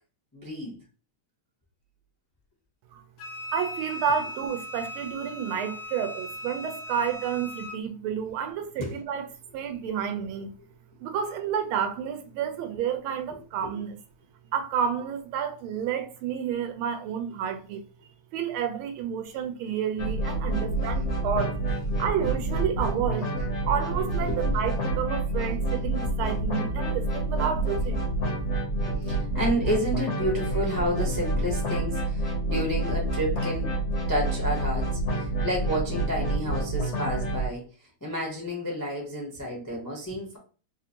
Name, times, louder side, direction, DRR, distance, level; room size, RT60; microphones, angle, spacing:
voice 1, 0.3-0.8 8.8-9.0 13.6-13.7 20.5-20.8 21.9-22.0 24.3-24.4 28.9-33.7 34.1-40.4, equal, 25° left, 0.4 m, -31 dB
Wind instrument woodwind instrument, 3.2-7.8, left 1 dB, 80° left, 1.5 m, -38 dB
voice 2, 3.5-9.3 9.5-10.5 11.0-14.0 14.5-17.8 18.3-21.6 22.0-23.3 23.7-28.0, right 8 dB, 85° right, 1.5 m, -30 dB
sound 1, 20.0-37.5, right 2 dB, 55° left, 0.8 m, -28 dB
3.9 x 2.5 x 2.8 m
omnidirectional pair, 2.3 m